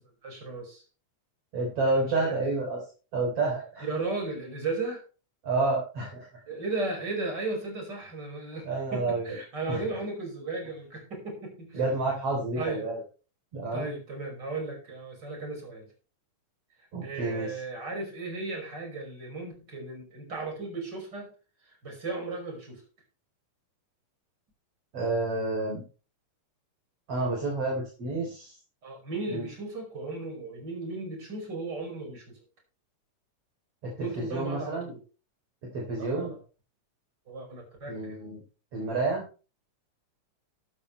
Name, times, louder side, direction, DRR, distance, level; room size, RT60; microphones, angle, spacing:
voice 1, 0.2-0.8 1.8-2.4 3.8-5.0 6.5-11.8 12.6-12.8 13.7-15.9 17.0-21.3 21.8-22.8 28.8-32.4 34.0-35.0 36.0-36.4 37.3-38.3, right 3 dB, 30° right, 1 dB, 6.0 m, -35 dB
voice 2, 1.5-2.8 3.1-3.9 5.4-6.3 8.6-9.4 9.7-9.8 11.7-13.0 13.5-13.9 16.9-17.6 24.9-25.8 27.1-28.6 29.3-29.5 33.8-34.9 35.7-36.3 37.9-38.4 38.7-39.2, right 3 dB, 50° right, -2 dB, 4.4 m, -29 dB
13.0 x 12.5 x 3.3 m, 0.35 s
omnidirectional pair, 3.5 m